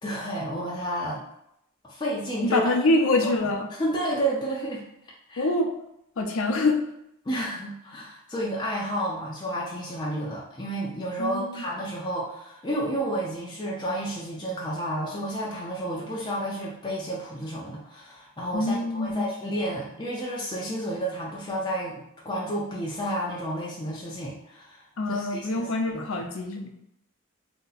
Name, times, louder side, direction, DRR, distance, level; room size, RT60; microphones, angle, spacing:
voice 1, 0.0-1.2 1.8-2.6 3.2-4.8 5.3-5.5 7.3-25.7 25.9-26.3, right 1 dB, 20° left, -5 dB, 0.4 m, -31 dB
voice 2, 2.4-3.7 5.4-5.7 6.2-6.8 11.2-11.6 18.5-19.3 25.0-26.7, left 2 dB, 70° left, 3 dB, 0.5 m, -25 dB
2.7 x 2.1 x 3.8 m, 0.79 s
head